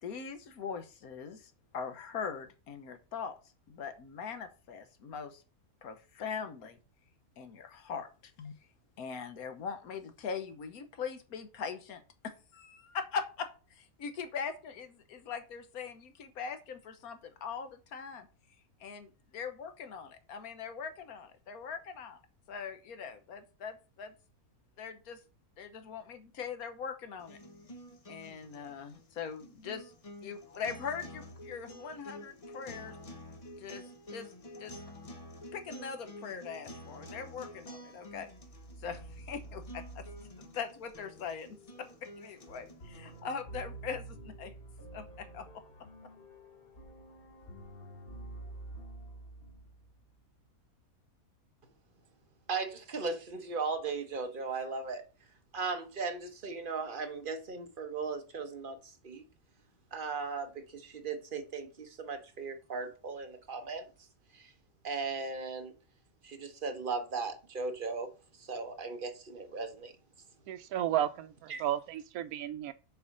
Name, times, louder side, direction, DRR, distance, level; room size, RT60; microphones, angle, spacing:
voice 1, 0.0-3.4 3.7-5.4 5.8-6.8 7.4-8.5 9.0-18.3 18.8-22.2 22.5-24.1 24.8-25.2 25.6-27.4 28.1-29.9 30.2-33.0 33.6-34.8 35.5-38.3 38.8-40.1 40.4-41.5 41.8-44.5 44.9-45.6, left 6 dB, 85° left, 1.4 m, -41 dB
sound 1, 27.2-43.2, left 1 dB, 30° left, 1.0 m, -50 dB
sound 2, 38.1-50.1, right 2 dB, 45° left, 1.2 m, -49 dB
voice 2, 52.5-55.0 55.5-59.2 59.9-63.9 64.3-64.5 64.8-65.7 66.2-68.1 68.4-69.9 71.5-71.6, right 4 dB, 40° right, 1.2 m, -37 dB
voice 3, 70.5-72.7, right 11 dB, 85° right, 1.1 m, -33 dB
6.8 x 4.8 x 5.3 m
omnidirectional pair, 1.5 m